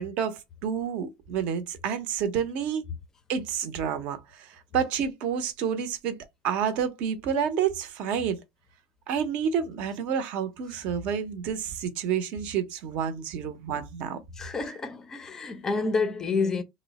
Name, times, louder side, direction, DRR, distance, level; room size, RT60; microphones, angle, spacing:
voice 1, 0.0-2.9 3.3-6.2 6.4-8.4 9.1-14.2, right 7 dB, 45° right, 0.7 m, -29 dB
voice 2, 14.4-16.6, left 4 dB, 15° left, 0.5 m, -28 dB
3.0 x 2.0 x 4.0 m
supercardioid pair, 155°, 3 cm